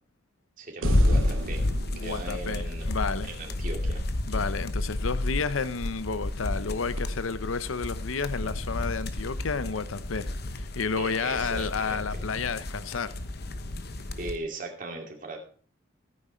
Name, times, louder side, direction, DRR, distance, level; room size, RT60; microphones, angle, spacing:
voice 1, 0.6-1.7 2.0-2.9 3.2-4.0 4.3-4.5 11.0-12.2 14.2-15.4, right 2 dB, 45° right, 2.5 m, -38 dB
sound 1, 0.8-14.3, left 1 dB, 50° left, 1.0 m, -30 dB
sound 2, 0.8-4.1 7.0-7.1, right 4 dB, 80° right, 0.6 m, -41 dB
voice 2, 1.9-3.3 4.3-13.1, left 5 dB, 90° left, 0.7 m, -31 dB
14.0 x 9.1 x 4.4 m
head